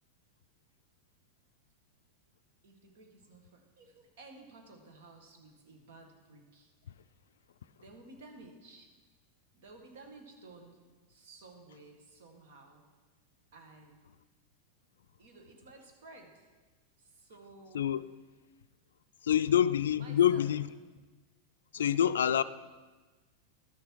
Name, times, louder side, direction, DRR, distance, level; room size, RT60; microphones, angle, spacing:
voice 1, 2.6-6.7 7.8-8.9 9.5-12.8 13.5-14.0 15.2-16.5 17.0-17.9 19.2-19.4 19.9-20.5 21.8-22.0, right 3 dB, 65° right, 1.8 m, -54 dB
voice 2, 19.2-20.7 21.7-22.4, left 10 dB, 75° left, 0.3 m, -26 dB
12.0 x 6.8 x 4.7 m
hypercardioid pair, 95°, 0 cm